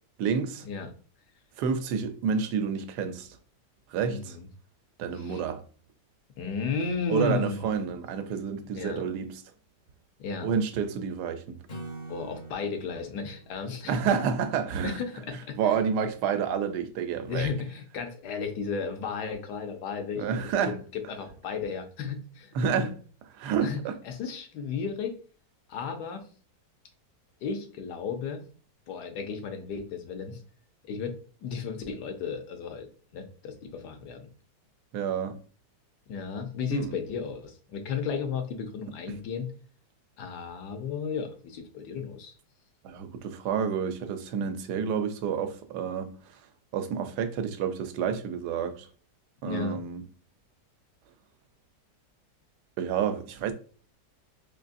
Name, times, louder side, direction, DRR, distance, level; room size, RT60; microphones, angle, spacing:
voice 1, 0.2-0.7 1.6-3.4 3.9-4.3 5.0-5.6 7.1-9.4 10.4-11.6 13.9-15.0 15.6-17.5 20.2-20.8 22.5-22.9 23.3-24.0 34.9-35.4 36.7-37.0 42.8-46.5 46.7-48.9 49.4-50.0 52.8-53.5, right 7 dB, 75° right, 1.1 m, -29 dB
voice 2, 4.1-4.5 5.1-5.4 6.4-7.9 8.7-9.0 10.2-10.5 12.1-13.9 14.8-15.7 17.3-22.9 23.6-23.8 24.0-25.2 25.7-26.3 27.4-28.4 28.9-30.4 30.8-34.3 36.1-39.5 40.2-42.3 49.4-49.8, left 5 dB, 75° left, 1.3 m, -34 dB
Acoustic guitar / Strum, 11.7-15.0, right 2 dB, 40° left, 0.5 m, -45 dB
3.9 x 3.1 x 2.5 m
omnidirectional pair, 1.8 m